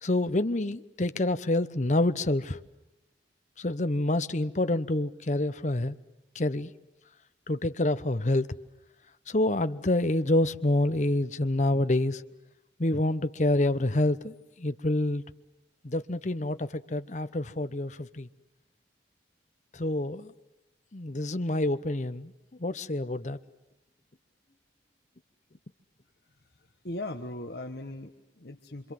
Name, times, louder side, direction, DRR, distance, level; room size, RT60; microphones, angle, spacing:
voice 1, 0.0-2.6 3.6-6.0 6.3-6.7 7.5-8.5 9.3-12.2 12.8-15.2 15.8-18.3 19.7-20.3 20.9-22.3 22.6-23.4, left 1 dB, 40° left, 0.9 m, -27 dB
voice 2, 26.4-28.9, left 1 dB, 60° left, 1.4 m, -39 dB
26.5 x 26.5 x 7.7 m
head